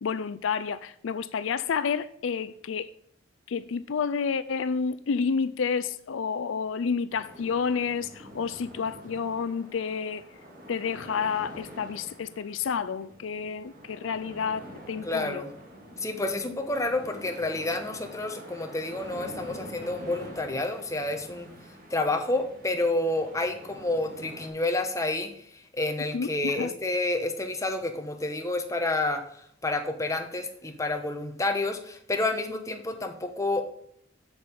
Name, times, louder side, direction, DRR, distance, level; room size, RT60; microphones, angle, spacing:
voice 1, 0.0-2.9 3.5-10.2 10.7-15.4 26.1-26.7, left 6 dB, 75° left, 0.4 m, -30 dB
sound 1, 7.1-24.5, equal, 45° right, 2.2 m, -46 dB
voice 2, 15.0-15.5 16.0-21.5 21.9-29.2 29.6-33.6, left 2 dB, 15° left, 1.1 m, -29 dB
7.7 x 7.2 x 5.3 m
head